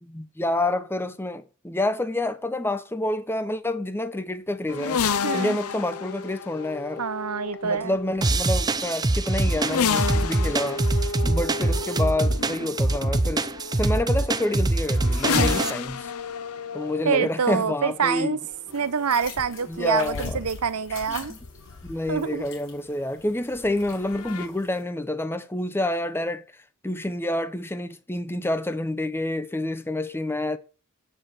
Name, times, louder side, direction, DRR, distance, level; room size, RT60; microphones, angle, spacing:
voice 1, 0.0-5.0 5.3-7.0 7.6-10.8 11.2-13.5 13.8-16.1 16.7-18.4 19.7-20.4 21.1-21.4 21.8-26.5 26.8-30.6, left 1 dB, 10° left, 0.8 m, -28 dB
sound 1, 4.7-22.5 23.5-24.5, left 6 dB, 85° left, 0.8 m, -32 dB
voice 2, 5.2-5.6 7.0-8.0 15.3-15.6 17.0-18.4 18.7-21.3 22.1-22.4, right 6 dB, 85° right, 0.7 m, -26 dB
sound 2, 8.2-15.7, right 2 dB, 20° right, 0.5 m, -24 dB
sound 3, 18.7-24.8, left 4 dB, 65° left, 6.2 m, -45 dB
9.2 x 6.8 x 7.6 m
head